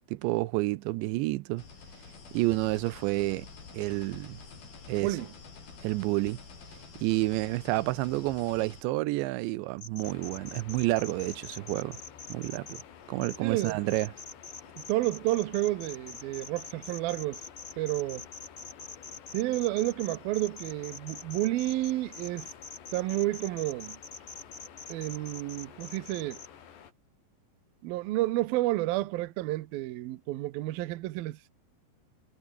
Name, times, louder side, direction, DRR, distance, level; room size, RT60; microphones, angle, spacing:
voice 1, 0.1-1.6 2.3-3.5 3.7-4.4 4.9-5.2 5.8-6.4 7.0-12.0 12.3-12.8 13.1-14.1, right 20 dB, 90° right, 3.1 m, -29 dB
sound 1, 1.6-8.8, left 5 dB, 60° left, 7.7 m, -48 dB
sound 2, 9.8-12.8 13.2-26.5, left 4 dB, 25° left, 3.1 m, -44 dB
sound 3, 10.0-26.9, left 9 dB, 75° left, 5.3 m, -51 dB
voice 2, 13.4-13.8 14.8-17.4 17.8-18.3 19.3-22.5 22.9-24.0 24.9-26.4 27.8-31.5, right 17 dB, 70° right, 2.5 m, -30 dB
omnidirectional pair, 5.0 m